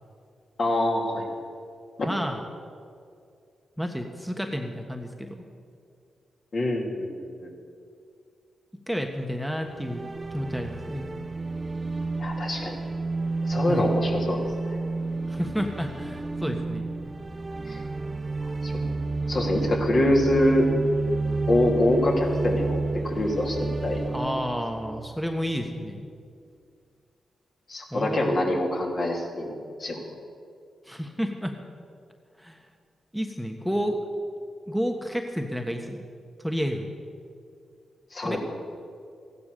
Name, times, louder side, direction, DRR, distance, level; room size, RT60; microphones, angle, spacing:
voice 1, 0.6-1.2 6.5-7.5 12.2-12.8 13.5-14.8 17.7-17.8 18.6-19.0 19.3-20.7 21.5-24.1 27.7-30.0 38.1-38.4, left 1 dB, 55° left, 0 dB, 3.0 m, -25 dB
voice 2, 2.0-2.4 3.8-5.4 8.9-11.0 13.7-13.9 15.3-16.9 24.1-26.1 27.9-28.5 30.8-31.5 32.4-32.6 33.1-34.0 34.7-36.0 36.4-36.9 38.2-38.4, equal, ahead, 4 dB, 1.3 m, -30 dB
sound 1, 9.6-25.7, right 3 dB, 30° right, 0.7 m, -30 dB
15.0 x 11.0 x 6.8 m, 2.3 s
cardioid pair, 65°, 0 cm